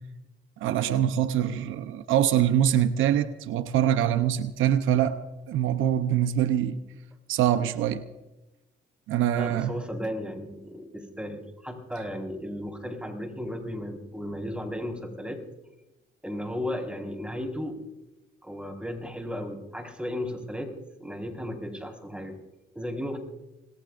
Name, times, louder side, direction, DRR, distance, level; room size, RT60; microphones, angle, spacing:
voice 1, 0.6-5.2 5.5-6.8 7.3-8.0 9.1-9.7, right 10 dB, 85° right, 0.8 m, -24 dB
voice 2, 9.4-15.4 16.2-17.8 18.4-20.7 21.0-22.4 22.7-23.2, left 1 dB, 5° right, 4.8 m, -35 dB
26.5 x 21.0 x 2.6 m
cardioid pair, 90°, 20 cm